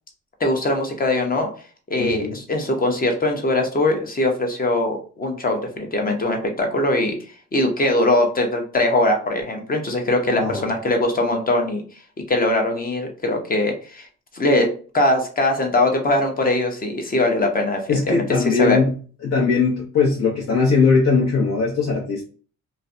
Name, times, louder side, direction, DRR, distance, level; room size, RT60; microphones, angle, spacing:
voice 1, 0.4-1.5 1.9-7.2 7.5-11.8 12.3-14.1 14.3-18.8, left 2 dB, 30° left, 3 dB, 0.7 m, -21 dB
voice 2, 2.0-2.4 10.4-10.7 17.9-18.9 19.2-22.2, left 4 dB, 60° left, -3 dB, 0.8 m, -20 dB
2.5 x 2.1 x 2.5 m, 0.40 s
cardioid pair, 90°, 30 cm